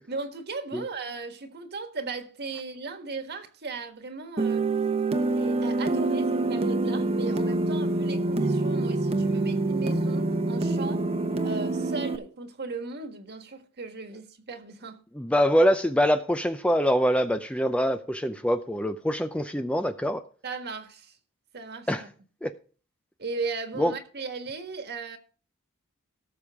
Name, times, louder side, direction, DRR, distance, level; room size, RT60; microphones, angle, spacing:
voice 1, 0.1-4.7 5.3-11.1 11.4-15.0 20.4-21.2 21.5-22.1 23.2-25.2, right 3 dB, 50° right, 1.6 m, -37 dB
sound 1, 4.4-12.2, right 2 dB, 30° right, 0.9 m, -26 dB
voice 2, 15.1-20.2 21.9-22.0 22.4-22.5 23.8-23.9, equal, 5° left, 0.5 m, -24 dB
18.0 x 6.9 x 3.5 m
head